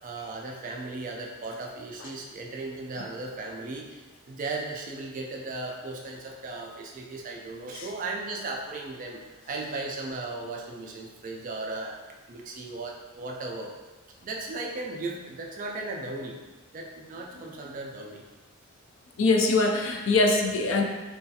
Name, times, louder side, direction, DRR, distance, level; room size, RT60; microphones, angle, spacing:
voice 1, 0.0-4.0 4.3-9.2 9.5-12.0 12.3-13.7 14.2-16.4 16.7-18.2, right 3 dB, 35° right, 0 dB, 0.3 m, -36 dB
voice 2, 19.2-20.8, left 3 dB, 60° left, 2 dB, 0.3 m, -23 dB
3.1 x 2.3 x 2.7 m, 1.2 s
head